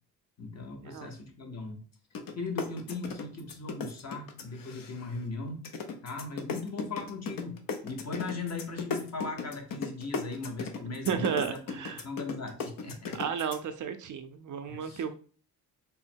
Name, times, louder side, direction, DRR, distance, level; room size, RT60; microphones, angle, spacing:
voice 1, 0.4-1.8 2.3-5.6 6.0-7.6 7.8-11.8 12.0-13.1 14.7-15.0, left 3 dB, 40° left, 3 dB, 1.0 m, -38 dB
sound 1, 2.1-2.3 2.6-5.2 5.6-13.6, left 5 dB, 60° left, 0.7 m, -35 dB
voice 2, 11.1-12.0 13.1-15.1, right 7 dB, 50° right, 8 dB, 0.5 m, -33 dB
3.6 x 2.1 x 4.3 m, 0.42 s
cardioid pair, 95°, 39 cm